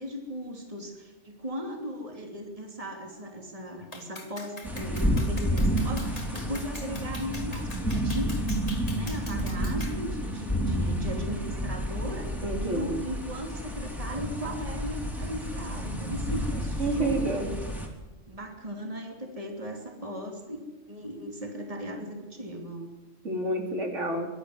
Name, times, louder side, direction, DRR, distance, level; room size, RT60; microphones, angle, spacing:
voice 1, 0.0-8.4 8.9-17.6 18.3-20.6 20.9-22.8, equal, 30° right, 2 dB, 3.1 m, -37 dB
Clapping, 3.9-10.0, left 2 dB, 30° left, 2.5 m, -44 dB
sound 1, 4.6-17.9, equal, ahead, 3.5 m, -30 dB
voice 2, 12.4-12.9 16.8-17.4 23.2-24.3, right 1 dB, 75° right, 1 dB, 4.0 m, -29 dB
24.5 x 12.5 x 9.7 m, 1.2 s
omnidirectional pair, 1.3 m